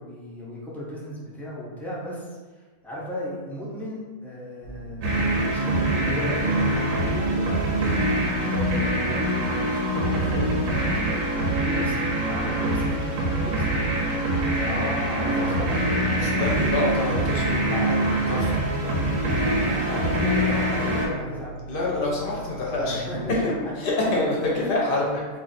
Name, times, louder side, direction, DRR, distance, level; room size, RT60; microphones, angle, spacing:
voice 1, 0.0-2.3 2.8-8.1 8.4-10.8 11.4-12.0 12.2-14.3 15.2-16.0 19.6-21.5 22.8-23.7 24.5-24.7 25.0-25.2, equal, ahead, -7 dB, 0.4 m, -35 dB
sound 1, 4.6-23.3, right 3 dB, 55° right, 0.7 m, -41 dB
sound 2, 5.0-21.1, right 1 dB, 85° right, 1.1 m, -24 dB
voice 2, 14.6-15.6 16.1-19.0 21.7-23.0 23.3-23.5 23.8-25.1, left 2 dB, 50° left, -3 dB, 0.8 m, -27 dB
2.5 x 2.5 x 4.0 m, 1.4 s
omnidirectional pair, 1.3 m